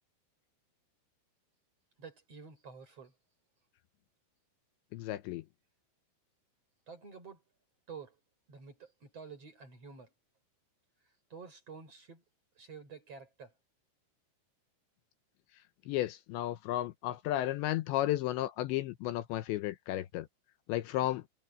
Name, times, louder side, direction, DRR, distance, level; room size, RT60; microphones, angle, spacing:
voice 1, 2.0-3.1 6.9-7.4 7.9-8.2 8.5-10.1 11.3-12.2 12.6-13.5, right 5 dB, 30° right, 6.5 m, -49 dB
voice 2, 4.9-5.4 15.9-20.3 20.7-21.2, left 14 dB, 80° left, 2.6 m, -33 dB
omnidirectional pair, 6.0 m